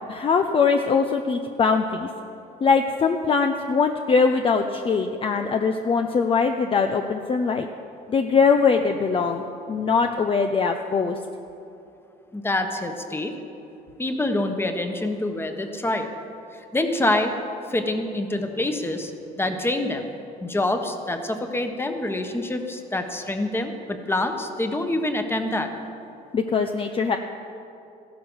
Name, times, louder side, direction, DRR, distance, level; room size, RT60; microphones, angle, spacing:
voice 1, 0.1-2.1 2.6-7.7 8.1-9.4 9.7-11.2 26.3-27.2, left 5 dB, 35° left, 5 dB, 0.7 m, -21 dB
voice 2, 12.3-13.4 14.0-16.1 16.5-17.3 17.7-20.1 20.4-25.7, left 1 dB, 15° left, 6 dB, 1.4 m, -26 dB
15.0 x 12.0 x 6.4 m, 2.7 s
cardioid pair, 110°, 17 cm